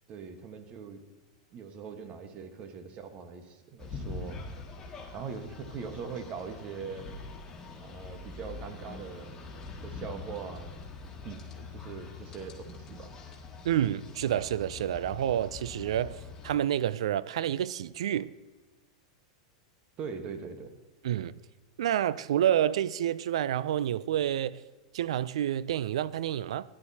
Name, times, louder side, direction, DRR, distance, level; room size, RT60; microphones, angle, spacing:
voice 1, 0.1-1.0 1.5-4.4 5.1-7.1 7.8-9.4 9.7-10.7 11.2-13.1 20.0-20.7, right 6 dB, 40° right, 1.3 m, -41 dB
sound 1, 3.8-16.6, left 4 dB, 20° left, 2.0 m, -44 dB
voice 2, 13.6-16.2 16.4-18.3 21.0-21.3 21.8-24.6 24.9-26.6, right 11 dB, 75° right, 0.3 m, -28 dB
13.5 x 11.0 x 2.8 m
hypercardioid pair, 110°, 3 cm